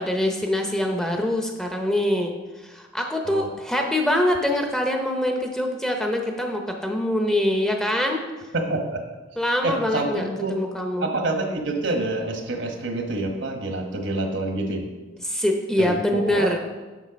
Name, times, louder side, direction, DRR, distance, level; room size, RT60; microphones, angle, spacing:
voice 1, 0.0-2.3 2.6-8.2 9.4-11.1 15.2-16.6, left 1 dB, 5° left, 2 dB, 0.7 m, -24 dB
voice 2, 8.5-9.0 9.6-10.6 11.0-14.9 15.8-16.0 16.3-16.6, right 2 dB, 65° right, 3 dB, 1.2 m, -27 dB
7.3 x 6.3 x 5.1 m, 1.2 s
head